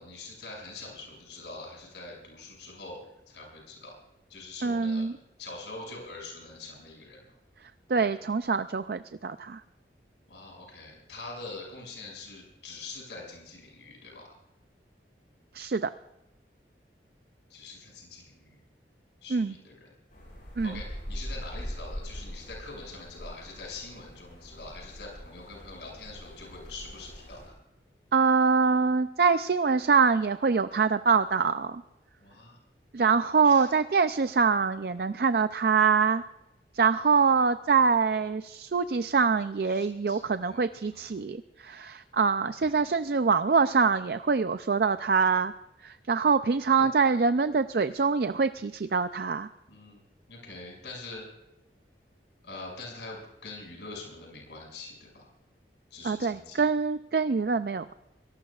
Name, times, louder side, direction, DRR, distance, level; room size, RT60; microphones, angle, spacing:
voice 1, 0.0-3.9 4.3-5.1 5.4-7.2 10.3-14.4 17.5-18.6 19.2-19.9 20.6-27.5 32.2-32.6 33.4-33.7 39.7-40.6 40.9-41.0 46.8-46.9 49.7-50.0 50.3-51.3 52.4-55.3 55.9-56.6, left 3 dB, 80° left, 0 dB, 6.3 m, -44 dB
voice 2, 4.6-5.1 7.9-9.6 15.5-15.9 19.3-19.5 20.6-20.8 28.1-31.8 32.9-36.2 36.7-45.5 45.8-49.5 56.0-57.9, right 5 dB, 60° right, 11 dB, 0.4 m, -24 dB
sound 1, 20.1-27.5, equal, 50° left, 6.5 m, -42 dB
24.5 x 18.0 x 2.4 m, 0.92 s
head